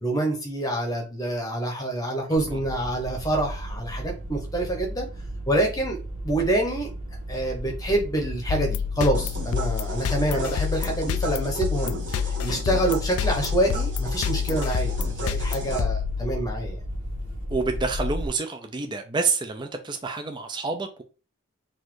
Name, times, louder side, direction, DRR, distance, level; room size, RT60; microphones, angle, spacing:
voice 1, 0.0-5.1 5.5-6.0 6.2-6.9 7.3-16.8, right 1 dB, 15° left, 0.8 m, -26 dB
sound 1, 2.4-18.3, equal, 85° right, 1.4 m, -34 dB
sound 2, 8.5-16.7, left 8 dB, 85° left, 0.3 m, -29 dB
sound 3, 9.1-15.8, right 2 dB, 55° right, 1.3 m, -37 dB
voice 2, 17.5-21.0, right 4 dB, 20° right, 0.4 m, -28 dB
4.1 x 2.6 x 4.6 m
head